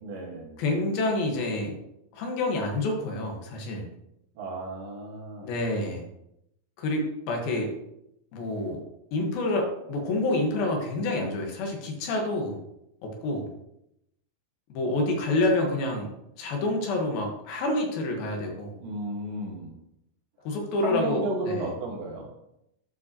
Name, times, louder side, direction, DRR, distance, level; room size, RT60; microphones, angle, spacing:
voice 1, 0.0-0.6 4.4-5.6 18.8-19.8 20.8-22.3, right 2 dB, 70° right, 0 dB, 3.1 m, -33 dB
voice 2, 0.6-1.7 2.1-3.9 5.4-6.0 6.8-7.7 8.3-8.8 9.1-12.6 13.0-13.5 14.7-16.1 16.4-18.8 20.4-21.2 21.5-21.7, left 2 dB, 80° left, 1 dB, 3.1 m, -28 dB
11.5 x 5.3 x 2.8 m, 0.81 s
omnidirectional pair, 4.2 m